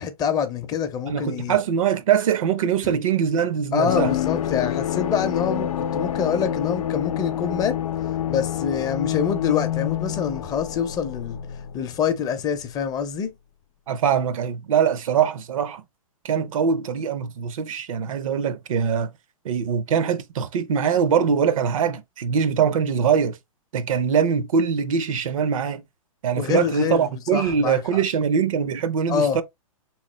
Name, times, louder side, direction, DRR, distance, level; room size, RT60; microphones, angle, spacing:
voice 1, 0.0-1.6 2.8-2.9 3.7-7.8 8.3-11.4 11.7-13.3 26.4-28.0 29.1-29.4, left 7 dB, 20° left, 0.5 m, -26 dB
voice 2, 1.1-4.1 13.9-15.8 16.2-19.1 19.4-23.4 23.7-25.8 26.2-29.4, right 7 dB, 65° right, 0.6 m, -22 dB
sound 1, 3.9-12.4 12.6-12.7, left 10 dB, 80° left, 0.6 m, -27 dB
3.5 x 3.1 x 3.0 m
hypercardioid pair, 130°, 18 cm